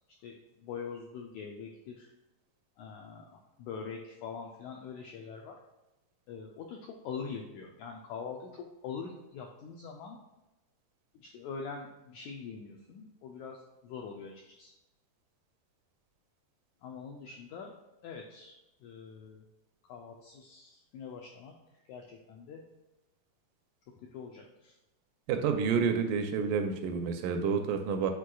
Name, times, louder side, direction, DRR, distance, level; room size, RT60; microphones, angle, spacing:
voice 1, 0.2-2.1 2.8-5.6 6.3-10.2 11.1-14.7 16.8-17.7 18.0-18.5 18.8-19.4 19.9-21.5 21.9-22.6 24.0-24.7, left 5 dB, 85° left, 1 dB, 1.6 m, -43 dB
voice 2, 25.3-28.1, right 6 dB, 80° right, 5 dB, 2.0 m, -29 dB
9.4 x 4.4 x 2.3 m, 0.97 s
omnidirectional pair, 3.9 m